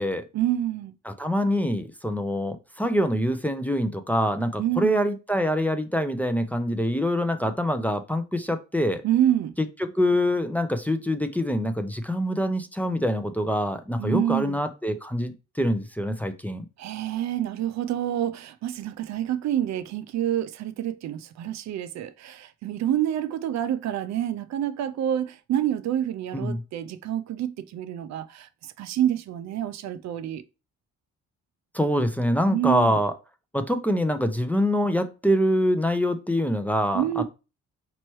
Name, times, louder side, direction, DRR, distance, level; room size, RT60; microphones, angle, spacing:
voice 1, 0.3-0.9 4.6-5.0 9.0-9.5 14.0-14.6 16.8-30.4 32.5-33.0 36.9-37.2, right 11 dB, 65° right, 0.4 m, -27 dB
voice 2, 1.1-9.0 9.8-16.7 26.3-26.6 31.7-33.1 33.5-37.2, equal, 5° left, 0.4 m, -25 dB
4.3 x 3.0 x 3.0 m
cardioid pair, 90°, 30 cm